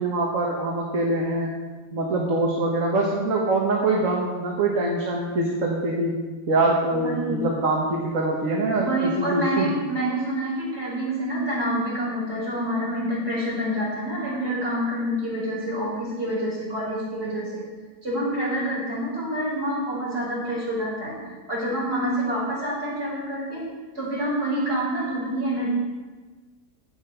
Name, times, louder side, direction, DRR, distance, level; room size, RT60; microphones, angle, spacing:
voice 1, 0.0-1.5 1.9-6.1 6.5-8.9 9.2-9.7, right 2 dB, 65° right, -2 dB, 1.8 m, -24 dB
voice 2, 6.9-7.5 8.8-17.6 18.0-23.7 23.9-25.7, equal, 45° right, -6 dB, 4.9 m, -27 dB
11.5 x 8.8 x 5.5 m, 1.3 s
omnidirectional pair, 1.5 m